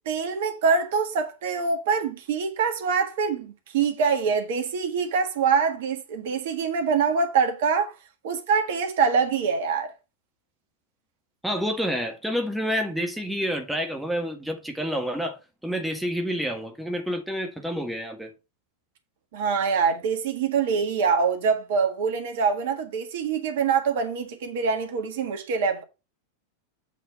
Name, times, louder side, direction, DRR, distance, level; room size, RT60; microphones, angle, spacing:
voice 1, 0.0-7.9 8.2-9.9 19.3-25.8, right 5 dB, 55° right, 1.6 m, -24 dB
voice 2, 11.4-15.4 15.6-18.3, equal, ahead, 1.5 m, -28 dB
8.2 x 4.2 x 5.4 m
figure-of-eight pair, 90°, 0 cm